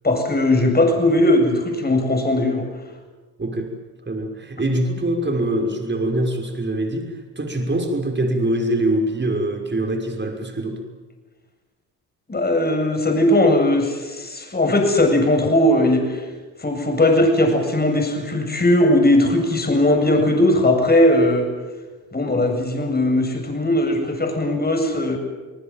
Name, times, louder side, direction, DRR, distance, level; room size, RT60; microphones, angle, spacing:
voice 1, 0.0-2.7 12.3-16.2 16.6-21.5 22.1-25.2, left 1 dB, 20° left, 4 dB, 7.7 m, -18 dB
voice 2, 3.4-3.7 4.1-10.8, right 1 dB, 25° right, 3 dB, 6.2 m, -23 dB
29.5 x 19.5 x 7.6 m, 1.3 s
hypercardioid pair, 60°, 44 cm